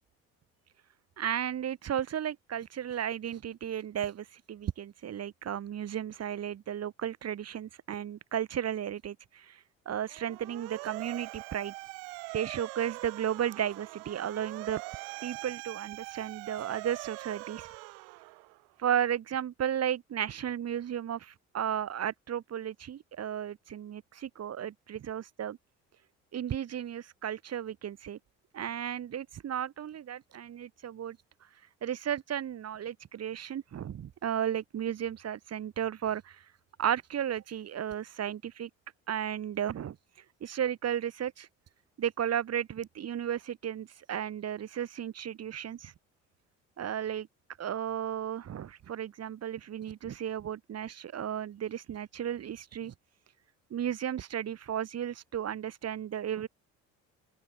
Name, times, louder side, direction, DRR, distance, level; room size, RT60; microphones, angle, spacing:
voice 1, 1.2-11.7 12.3-14.8 15.2-17.7 18.8-25.6 26.3-28.2 28.5-31.2 31.8-36.5 36.8-38.7 39.1-40.0 40.4-41.5 42.0-45.9 46.8-47.3 47.6-52.9 53.7-56.5, right 9 dB, 40° right, 1.2 m, -34 dB
Motor vehicle (road) / Siren, 10.1-18.7, right 40 dB or more, 75° right, 1.2 m, -43 dB
open air
hypercardioid pair, 60°, 38 cm